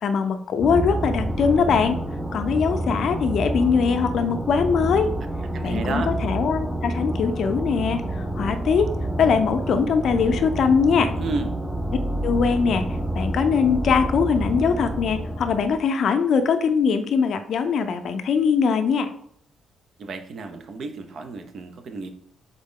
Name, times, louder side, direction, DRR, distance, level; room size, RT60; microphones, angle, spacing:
voice 1, 0.0-2.0 2.3-5.1 5.6-8.9 9.2-11.1 12.2-12.9 13.1-19.1, left 6 dB, 65° left, 8 dB, 0.5 m, -21 dB
sound 1, 0.6-15.8, right 1 dB, 10° right, 0.5 m, -28 dB
voice 2, 5.5-6.1 11.2-11.5 20.0-22.1, right 4 dB, 55° right, 7 dB, 0.6 m, -32 dB
4.0 x 3.6 x 3.7 m, 0.66 s
cardioid pair, 90°, 0 cm